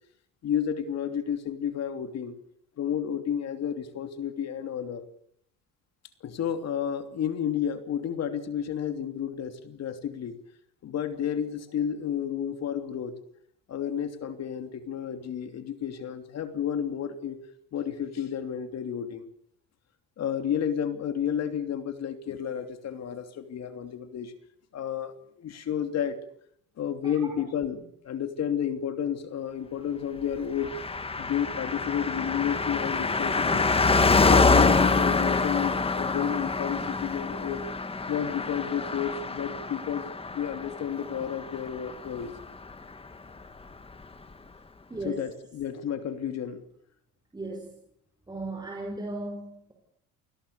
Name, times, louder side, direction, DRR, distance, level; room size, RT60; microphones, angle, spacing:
voice 1, 0.4-2.3 2.8-5.1 6.2-10.4 10.8-13.1 13.7-17.4 17.7-19.3 20.2-24.3 24.7-26.2 26.8-30.7 31.2-33.7 34.2-37.6 38.1-42.3 45.0-46.6, left 8 dB, 50° left, 8 dB, 3.1 m, -31 dB
voice 2, 27.0-27.4 44.9-45.2 47.3-47.8 48.3-49.7, right 2 dB, 10° right, 1 dB, 5.6 m, -36 dB
Car passing by, 30.6-42.4 42.7-42.8, left 3 dB, 15° left, 1.8 m, -26 dB
29.0 x 20.5 x 6.9 m, 0.69 s
cardioid pair, 130°, 33 cm